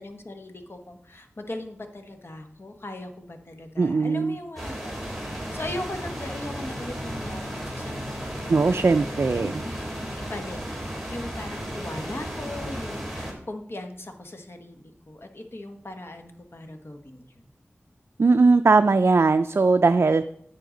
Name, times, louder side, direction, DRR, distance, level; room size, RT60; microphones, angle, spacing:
voice 1, 0.0-9.7 10.2-10.6 11.0-17.3, left 1 dB, 55° left, 5 dB, 1.2 m, -39 dB
voice 2, 3.8-4.4 8.5-9.6 18.2-20.2, right 3 dB, 60° right, 8 dB, 0.4 m, -19 dB
sound 1, 4.6-13.3, equal, ahead, 3.3 m, -34 dB
10.0 x 8.6 x 3.9 m, 0.68 s
wide cardioid pair, 60°, 5 cm